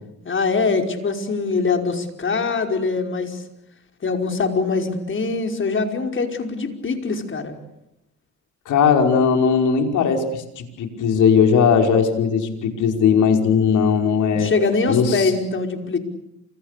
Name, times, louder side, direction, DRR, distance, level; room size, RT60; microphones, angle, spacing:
voice 1, 0.3-3.4 4.0-7.6 14.3-16.0, left 4 dB, 40° left, 5 dB, 5.2 m, -23 dB
voice 2, 8.7-14.5 14.9-15.3, left 6 dB, 80° left, 5 dB, 5.4 m, -18 dB
29.5 x 27.0 x 6.8 m, 0.83 s
cardioid pair, 90°, 30 cm